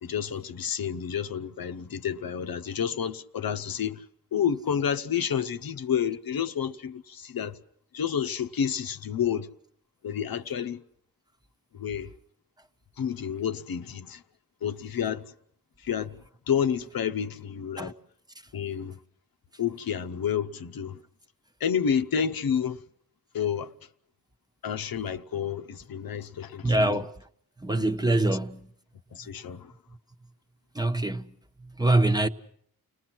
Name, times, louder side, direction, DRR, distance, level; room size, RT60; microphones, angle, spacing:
voice 1, 0.0-4.0 4.3-7.6 7.9-9.5 10.0-10.8 11.7-12.1 13.0-14.2 14.6-15.2 15.8-16.2 16.5-17.9 18.5-19.0 19.6-21.0 21.6-22.8 23.3-23.7 24.6-27.0 27.7-28.2 29.1-29.7, left 8 dB, 90° left, 0.9 m, -30 dB
voice 2, 26.6-27.1 27.6-28.7 30.7-31.3 31.8-32.3, right 2 dB, 10° right, 1.0 m, -24 dB
30.0 x 19.5 x 6.0 m
cardioid pair, 75°, 34 cm